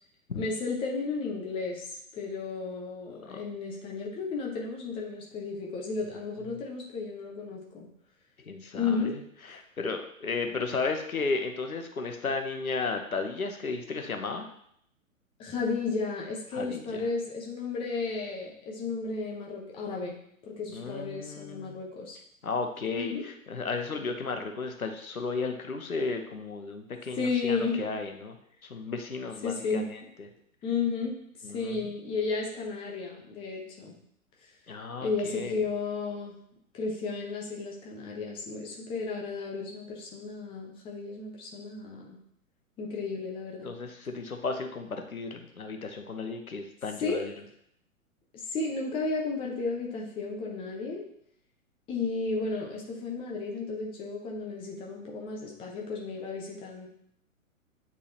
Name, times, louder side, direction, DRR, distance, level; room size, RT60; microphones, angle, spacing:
voice 1, 0.4-7.9 8.7-9.2 15.4-20.2 20.5-22.2 22.9-23.2 27.1-27.9 29.4-29.9 30.6-31.2 31.5-34.0 35.0-36.4 36.7-42.2 42.8-43.7 47.0-47.2 48.5-51.0 51.9-56.9, left 4 dB, 15° left, -1 dB, 0.8 m, -33 dB
voice 2, 8.4-9.2 9.5-14.5 16.5-17.1 20.7-21.8 22.4-28.4 28.6-30.3 31.4-31.8 34.7-35.6 43.6-47.3, left 4 dB, 80° left, 5 dB, 1.0 m, -34 dB
8.7 x 3.7 x 2.9 m, 0.70 s
figure-of-eight pair, 115°, 42 cm